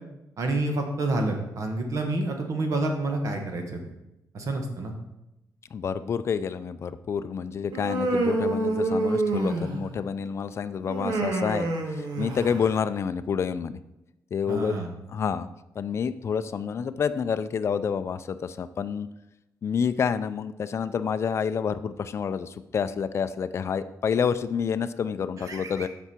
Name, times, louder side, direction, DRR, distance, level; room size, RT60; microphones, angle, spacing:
voice 1, 0.4-3.8 4.3-5.0 14.5-14.9 25.4-25.9, right 2 dB, 50° right, 4 dB, 1.4 m, -28 dB
voice 2, 5.7-13.8 14.3-14.8 15.1-15.5 15.8-19.1 19.6-25.9, left 6 dB, 40° left, 12 dB, 0.4 m, -28 dB
Human voice, 7.7-10.0 10.9-12.7, right 2 dB, 90° right, 1.5 m, -27 dB
8.1 x 6.0 x 4.4 m, 0.90 s
wide cardioid pair, 145°, 7 cm